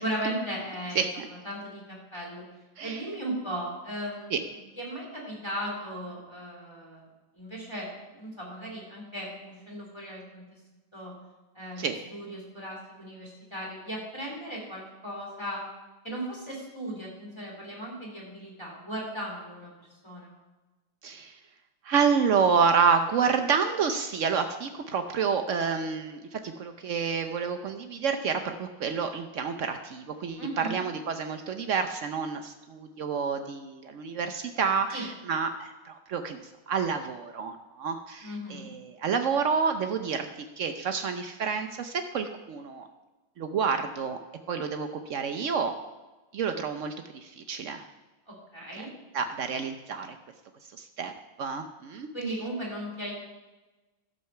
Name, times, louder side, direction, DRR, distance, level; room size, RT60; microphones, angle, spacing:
voice 1, 0.0-1.1 1.4-2.5 2.8-4.5 4.8-7.1 7.3-10.6 10.9-11.1 11.5-15.6 16.0-19.7 20.0-20.3 30.4-30.8 34.9-35.0 38.2-38.7 48.3-48.9 52.1-53.1, right 1 dB, 15° left, -3 dB, 3.1 m, -37 dB
voice 2, 1.0-1.3 2.8-3.0 4.3-4.4 11.8-12.0 21.0-21.4 21.8-36.4 36.7-42.9 43.4-44.2 44.5-45.7 46.3-47.9 48.8-48.9 49.1-50.2 50.8-51.1 51.4-52.1, right 6 dB, 80° right, 7 dB, 0.6 m, -29 dB
12.5 x 6.8 x 5.5 m, 1.2 s
omnidirectional pair, 2.1 m